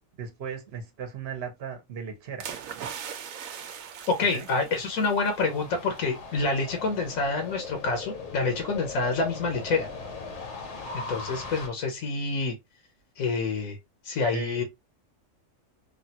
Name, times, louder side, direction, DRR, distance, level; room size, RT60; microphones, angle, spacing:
voice 1, 0.2-2.6 4.3-4.5 14.3-14.6, right 6 dB, 55° right, 0.9 m, -37 dB
sound 1, 2.4-5.4 5.8-6.0, right 8 dB, 90° right, 1.0 m, -40 dB
sound 2, 4.0-11.7, left 4 dB, 65° left, 1.0 m, -39 dB
voice 2, 4.1-9.9 10.9-12.5 13.2-13.8 14.0-14.6, left 3 dB, 85° left, 1.2 m, -27 dB
3.2 x 2.3 x 2.7 m
omnidirectional pair, 1.4 m